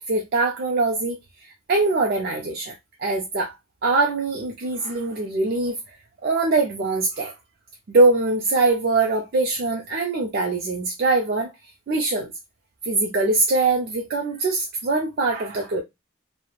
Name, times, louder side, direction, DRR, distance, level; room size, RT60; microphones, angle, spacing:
voice 1, 0.1-1.2 1.7-2.7 3.0-3.5 3.8-5.8 6.2-7.3 7.9-11.5 11.9-12.3 12.8-15.8, right 3 dB, 50° right, 0.4 m, -22 dB
3.0 x 2.0 x 2.3 m
head